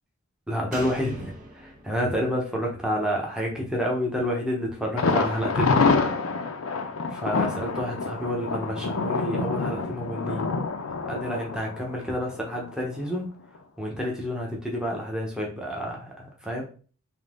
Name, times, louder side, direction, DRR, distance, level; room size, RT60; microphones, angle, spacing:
voice 1, 0.5-6.0 7.1-10.5 10.9-13.3 13.8-16.6, equal, 5° right, -1 dB, 1.0 m, -29 dB
Slam, 0.7-4.2 4.5-4.6, right 1 dB, 40° right, 1.1 m, -44 dB
Thunder, 5.0-12.7 13.0-13.1 13.5-13.6, left 4 dB, 70° left, 0.6 m, -27 dB
3.9 x 2.9 x 3.6 m, 0.38 s
head